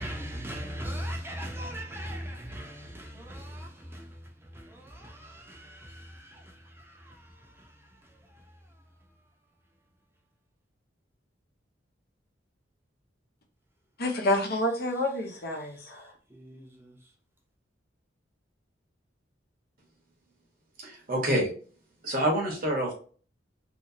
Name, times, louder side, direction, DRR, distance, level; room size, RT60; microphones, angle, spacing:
voice 1, 0.0-9.2 15.6-17.1, equal, 15° right, 0.8 m, -41 dB
voice 2, 14.0-16.1, left 1 dB, 55° left, 0.9 m, -28 dB
voice 3, 20.8-21.5 22.0-22.9, right 1 dB, 50° right, 1.1 m, -27 dB
3.1 x 3.0 x 2.7 m
head